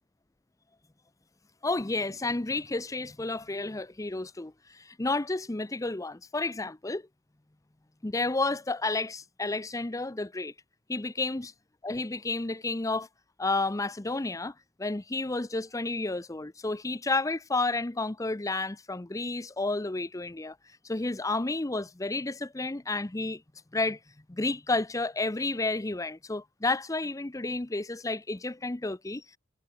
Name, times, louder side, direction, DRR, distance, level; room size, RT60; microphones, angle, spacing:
voice 1, 1.6-7.0 8.0-10.5 10.9-11.5 11.8-13.1 13.4-14.5 14.8-20.6 20.8-23.4 23.7-24.0 24.3-29.2, left 2 dB, 15° left, 0.6 m, -31 dB
head